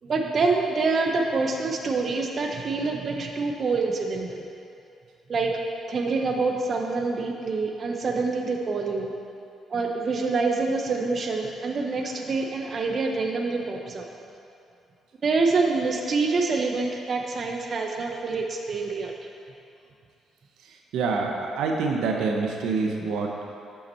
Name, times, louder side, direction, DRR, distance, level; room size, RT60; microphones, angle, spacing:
voice 1, 0.0-4.5 5.3-5.6 5.9-9.1 9.7-14.1 15.2-19.1, right 3 dB, 45° right, 2 dB, 0.6 m, -26 dB
voice 2, 20.9-23.5, right 4 dB, 85° right, 1 dB, 0.7 m, -26 dB
7.4 x 5.7 x 4.3 m, 2.6 s
cardioid pair, 90°, 0 cm